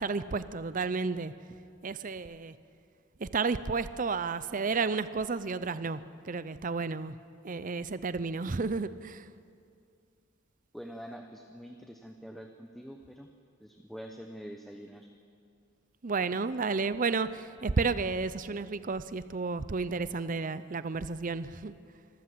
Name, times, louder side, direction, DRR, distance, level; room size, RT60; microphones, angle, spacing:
voice 1, 0.0-1.3 1.8-2.5 3.2-7.2 7.4-9.3 16.0-21.8, right 4 dB, 40° right, 14 dB, 0.6 m, -32 dB
voice 2, 10.7-13.3 13.6-15.1, equal, ahead, 3 dB, 0.9 m, -45 dB
25.5 x 14.0 x 7.9 m, 2.4 s
head